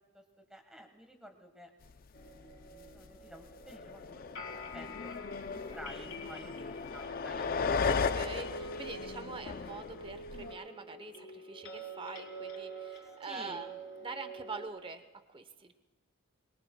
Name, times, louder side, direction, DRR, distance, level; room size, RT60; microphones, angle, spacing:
voice 1, 0.5-1.7 2.3-5.1 5.5-7.8 13.3-13.6, equal, 5° right, 4 dB, 1.3 m, -51 dB
sound 1, 2.1-14.7, equal, 60° left, 3.6 m, -46 dB
sound 2, 2.2-2.3 2.6-3.2 3.6-10.5, left 5 dB, 40° left, 0.4 m, -36 dB
voice 2, 7.8-15.7, right 4 dB, 25° right, 10 dB, 0.8 m, -45 dB
24.5 x 22.0 x 2.2 m, 1.3 s
head